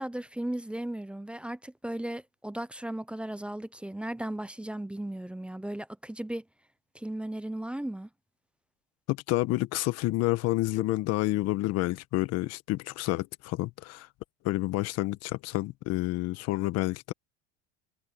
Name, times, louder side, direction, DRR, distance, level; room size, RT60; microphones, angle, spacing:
voice 1, 0.0-6.4 6.9-8.1, right 1 dB, 5° right, 0.5 m, -36 dB
voice 2, 9.1-14.1 14.4-17.1, left 18 dB, 50° left, 1.3 m, -29 dB
supercardioid pair, 125°, 32 cm